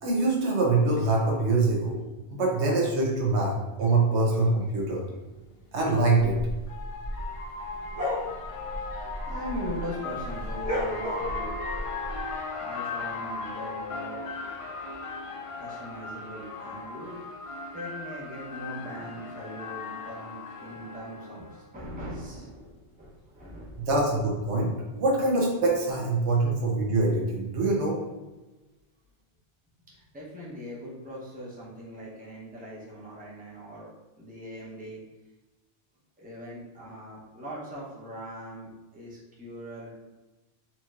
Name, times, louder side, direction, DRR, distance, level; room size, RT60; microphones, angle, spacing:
voice 1, 0.0-2.0 2.3-3.5 3.8-5.0 5.7-6.4 23.8-28.0, right 2 dB, 85° right, -2 dB, 1.2 m, -24 dB
voice 2, 1.5-1.9 4.1-4.4 8.0-8.1 8.8-11.5 12.6-14.2 15.6-17.2 17.7-23.9 30.1-33.9 34.2-35.0 36.2-39.9, equal, 10° right, -6 dB, 0.8 m, -40 dB
sound 1, 4.5-4.6 6.0-21.6, left 3 dB, 60° left, 0.3 m, -37 dB
sound 2, 6.5-9.9 10.2-12.2, left 1 dB, 40° right, 0.7 m, -33 dB
4.3 x 2.9 x 2.4 m, 1.1 s
omnidirectional pair, 1.1 m